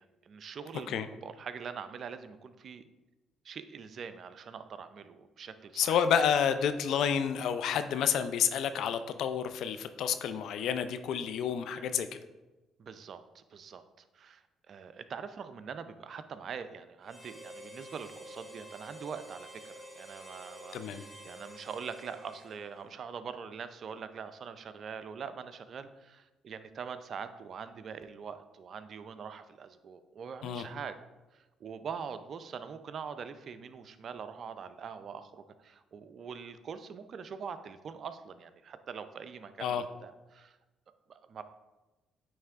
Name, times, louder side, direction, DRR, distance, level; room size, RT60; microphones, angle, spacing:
voice 1, 0.0-2.8 3.4-6.1 12.8-31.0 31.3-40.6 41.1-41.4, right 6 dB, 55° right, 11 dB, 0.5 m, -43 dB
voice 2, 5.8-12.1 20.7-21.0 30.4-30.7 39.6-39.8, left 8 dB, 70° left, 10 dB, 0.4 m, -29 dB
Harmonica, 17.0-23.0, right 1 dB, ahead, 1.8 m, -49 dB
9.0 x 3.2 x 3.5 m, 1.1 s
supercardioid pair, 60°, 0 cm